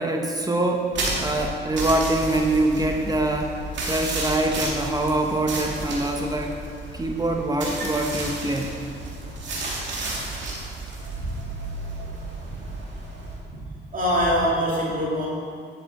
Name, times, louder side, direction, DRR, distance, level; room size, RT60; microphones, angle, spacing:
voice 1, 0.0-3.6 3.8-6.6 6.9-8.7, right 1 dB, 20° right, 2 dB, 0.9 m, -24 dB
sound 1, 0.9-13.4, right 2 dB, 65° right, 2.2 m, -32 dB
voice 2, 13.9-15.3, equal, 40° right, -5 dB, 2.4 m, -23 dB
10.5 x 6.8 x 4.2 m, 2.2 s
cardioid pair, 90°, 20 cm